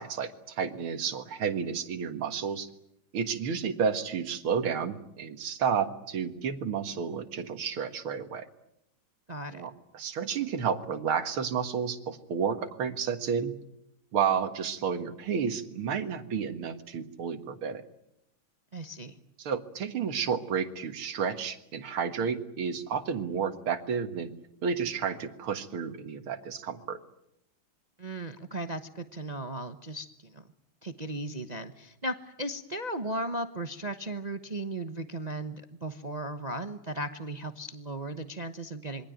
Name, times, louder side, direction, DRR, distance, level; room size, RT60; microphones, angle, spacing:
voice 1, 0.0-2.7 3.1-8.5 9.5-13.5 14.1-17.8 19.4-24.3 24.6-27.0, right 6 dB, 85° right, 9 dB, 2.5 m, -31 dB
voice 2, 9.3-9.7 18.7-19.2 28.0-30.4 30.8-39.1, right 1 dB, 30° right, 8 dB, 0.9 m, -36 dB
27.0 x 22.5 x 9.2 m, 0.82 s
omnidirectional pair, 2.3 m